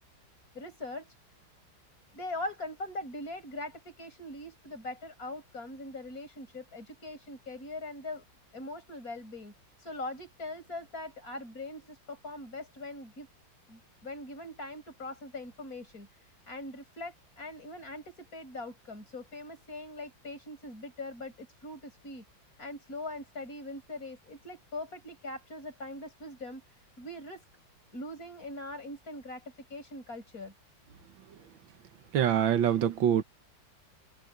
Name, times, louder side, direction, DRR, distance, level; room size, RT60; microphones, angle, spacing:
voice 1, 0.6-1.1 2.1-8.2 8.5-9.5 9.8-13.3 13.7-22.2 22.6-26.6 27.0-27.4 27.9-30.5, left 2 dB, 45° left, 7.3 m, -41 dB
voice 2, 32.1-33.2, right 9 dB, 80° right, 1.9 m, -24 dB
omnidirectional pair, 2.1 m